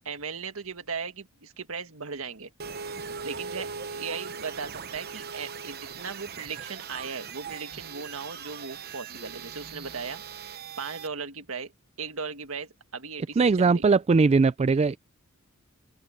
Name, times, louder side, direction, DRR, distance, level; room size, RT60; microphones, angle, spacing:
voice 1, 0.0-2.5 3.2-10.2 10.8-11.7 12.0-13.9, right 5 dB, 75° right, 1.8 m, -37 dB
sound 1, 2.6-11.1, right 5 dB, 45° right, 0.9 m, -40 dB
voice 2, 13.4-15.0, right 4 dB, 30° right, 0.3 m, -20 dB
open air
head